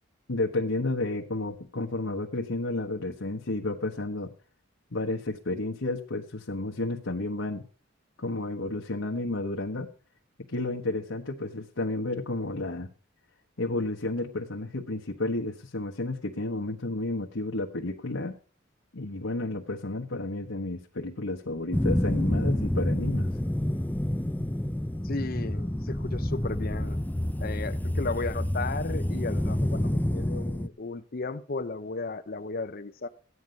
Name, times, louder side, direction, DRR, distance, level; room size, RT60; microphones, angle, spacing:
voice 1, 0.3-4.3 4.9-7.6 8.2-9.9 10.5-12.9 13.6-18.4 18.9-23.3, left 2 dB, 85° left, 1.3 m, -31 dB
sound 1, 21.7-30.7, left 1 dB, 10° left, 0.5 m, -28 dB
voice 2, 25.0-27.0 27.4-33.1, left 3 dB, 45° left, 0.7 m, -35 dB
15.0 x 9.6 x 5.3 m
head